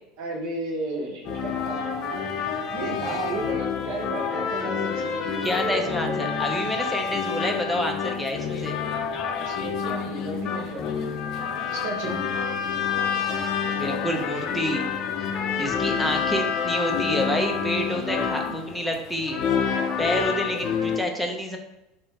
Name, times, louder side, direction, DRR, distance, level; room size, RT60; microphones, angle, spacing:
voice 1, 0.2-6.3 9.4-11.1 11.7-12.2 13.8-14.3 15.5-16.2 17.9-18.6 19.4-20.0, right 2 dB, 70° right, 1 dB, 0.8 m, -34 dB
sound 1, 1.2-21.0, left 6 dB, 50° left, 0.5 m, -28 dB
voice 2, 5.4-8.7 13.8-14.8 15.6-19.4 20.0-21.6, equal, ahead, 1 dB, 0.6 m, -28 dB
3.6 x 2.6 x 4.2 m, 0.93 s
supercardioid pair, 120°, 0 cm